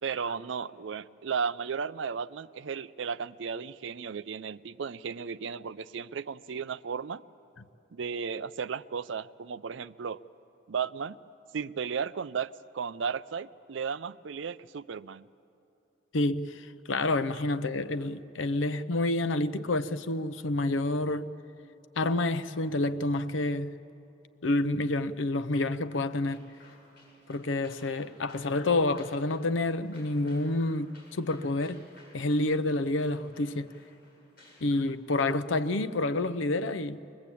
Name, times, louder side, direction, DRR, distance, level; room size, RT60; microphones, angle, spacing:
voice 1, 0.0-7.2 7.9-10.2 10.7-11.2 11.5-15.3, right 6 dB, 75° right, 0.5 m, -34 dB
voice 2, 16.1-21.3 22.0-23.7 24.4-26.4 27.3-31.8 32.1-33.7 34.6-37.0, left 2 dB, 80° left, 0.7 m, -28 dB
sound 1, 25.9-36.1, left 2 dB, 50° left, 6.9 m, -58 dB
22.5 x 20.5 x 8.4 m
head